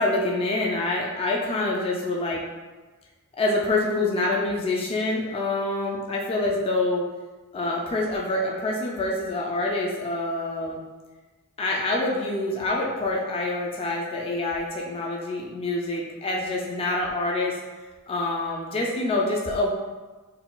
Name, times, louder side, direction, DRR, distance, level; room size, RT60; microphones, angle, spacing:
voice 1, 0.0-2.4 3.4-7.1 7.5-10.8 11.6-17.6 18.1-19.7, left 2 dB, 25° left, -2 dB, 0.3 m, -26 dB
3.9 x 2.2 x 2.3 m, 1.3 s
head